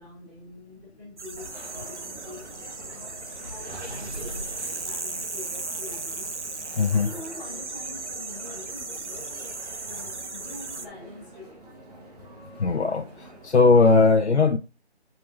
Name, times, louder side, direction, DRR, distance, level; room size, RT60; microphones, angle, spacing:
voice 1, 0.0-6.6 6.9-11.6, left 2 dB, 20° right, 4.9 m, -45 dB
sound 1, 1.2-10.9, right 3 dB, 90° right, 1.4 m, -36 dB
sound 2, 1.4-13.9, right 2 dB, 35° right, 1.8 m, -47 dB
Gurgling, 3.5-5.7, right 1 dB, 70° right, 3.4 m, -41 dB
voice 2, 6.8-7.1 12.6-14.6, left 4 dB, 75° left, 0.9 m, -19 dB
10.0 x 5.5 x 2.7 m
figure-of-eight pair, 165°, 34 cm